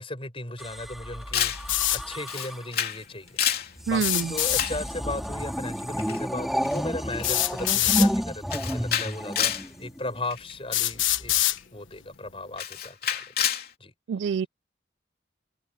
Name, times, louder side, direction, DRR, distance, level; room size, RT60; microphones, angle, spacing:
voice 1, 0.0-1.5 1.9-3.4 3.9-11.3 11.7-13.2 13.8-13.9, left 2 dB, 30° left, 5.3 m, -36 dB
sound 1, 0.6-2.7 3.8-10.2 11.1-11.4, equal, ahead, 2.5 m, -31 dB
Camera, 1.3-1.7 2.3-3.0 3.3-3.7 4.6-4.8 6.0-6.2 6.6-6.8 7.1-7.3 7.6-7.9 8.5-9.7 10.3-10.5 11.6-11.7 12.6-13.7, left 9 dB, 50° left, 3.4 m, -28 dB
sound 2, 1.7-2.0 3.9-4.7 6.1-6.2 7.2-8.1 9.1-9.2 9.9-10.0 10.7-11.6, left 14 dB, 90° left, 1.3 m, -24 dB
voice 2, 3.9-4.3 14.1-14.5, right 6 dB, 75° right, 0.3 m, -26 dB
head